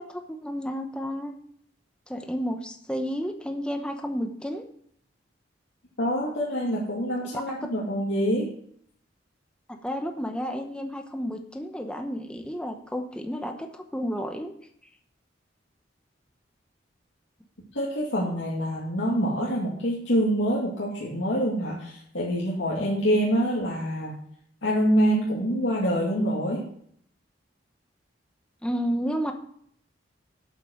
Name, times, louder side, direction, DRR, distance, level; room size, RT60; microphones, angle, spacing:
voice 1, 0.0-1.3 2.1-4.6 7.2-7.3 9.7-14.5 28.6-29.3, equal, 5° left, 4 dB, 0.8 m, -31 dB
voice 2, 6.0-8.5 17.7-24.1 24.6-26.6, equal, 85° left, -5 dB, 2.3 m, -25 dB
8.4 x 8.2 x 6.4 m, 0.65 s
head